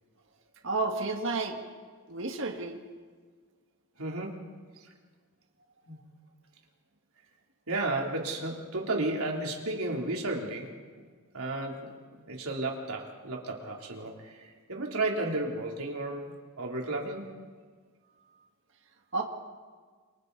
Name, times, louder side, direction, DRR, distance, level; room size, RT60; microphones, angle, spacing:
voice 1, 0.6-1.6 2.1-2.8 19.1-19.2, right 3 dB, 60° right, 3 dB, 1.9 m, -31 dB
voice 2, 4.0-4.5 5.8-6.0 7.7-10.7 11.3-17.3, right 2 dB, 80° right, -1 dB, 3.4 m, -33 dB
29.0 x 24.5 x 4.1 m, 1.5 s
head